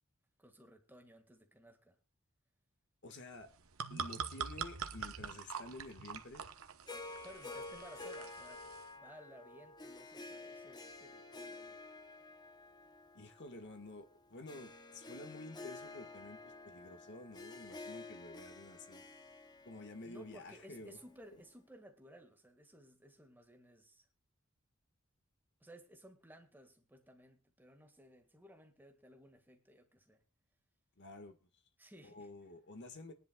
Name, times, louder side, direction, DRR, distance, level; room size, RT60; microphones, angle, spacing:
voice 1, 0.4-2.0 7.2-8.6 8.9-11.8 20.0-24.1 25.6-30.2 31.8-32.3, equal, 10° right, 1.8 m, -58 dB
voice 2, 3.0-3.5 3.9-6.4 13.1-19.1 19.6-21.0 21.3-21.4 31.0-31.4 32.0-33.1, left 2 dB, 55° left, 1.7 m, -51 dB
sound 1, 3.4-8.9, right 6 dB, 80° right, 1.0 m, -44 dB
Harp, 6.9-21.2, left 3 dB, 20° left, 0.9 m, -51 dB
22.0 x 10.5 x 2.3 m
head